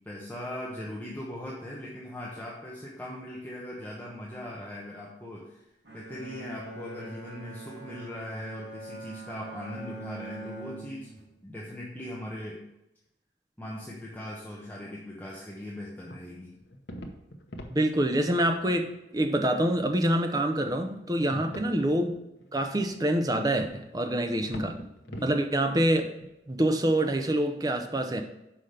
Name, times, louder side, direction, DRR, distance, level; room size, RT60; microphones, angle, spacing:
voice 1, 0.0-5.6 5.9-11.1 11.4-12.6 13.6-16.5 21.3-21.6 25.1-25.3, left 1 dB, 10° left, -5 dB, 1.0 m, -40 dB
Bowed string instrument, 5.8-11.3, right 2 dB, 65° right, 1.8 m, -43 dB
sound 1, 16.1-18.4 18.7-18.9 19.5-19.6 20.3-21.8 22.1-26.3, equal, 75° left, 0.9 m, -44 dB
voice 2, 17.7-18.9 19.1-22.1 22.5-24.8 25.2-26.1 26.5-28.2, right 1 dB, 20° right, 5 dB, 0.7 m, -26 dB
5.7 x 5.0 x 6.5 m, 0.89 s
head